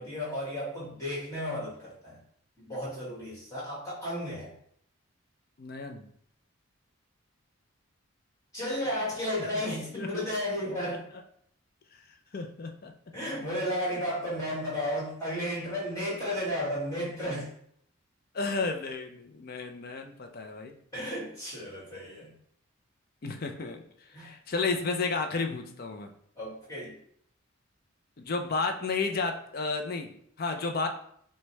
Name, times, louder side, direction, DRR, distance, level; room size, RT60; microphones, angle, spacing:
voice 1, 0.0-2.2 2.6-4.5 8.5-11.0 13.1-17.5 20.9-22.3 24.1-24.3 26.4-26.9, equal, 15° left, -7 dB, 1.6 m, -33 dB
voice 2, 5.6-6.0 9.9-10.3 11.9-12.0 12.3-12.9 16.0-16.3 18.3-20.8 23.2-26.1 28.2-30.9, left 4 dB, 45° left, 5 dB, 0.4 m, -32 dB
5.9 x 2.2 x 3.2 m, 0.67 s
head